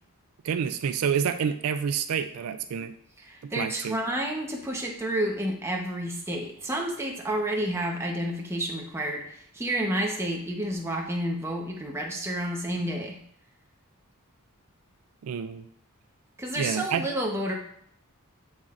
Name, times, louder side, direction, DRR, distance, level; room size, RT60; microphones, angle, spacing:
voice 1, 0.4-2.9 3.4-4.0 15.2-15.7 16.6-17.0, right 7 dB, 75° right, 9 dB, 0.4 m, -28 dB
voice 2, 3.3-13.2 16.4-17.5, right 1 dB, 10° right, 0 dB, 0.9 m, -30 dB
7.2 x 6.3 x 2.5 m, 0.65 s
head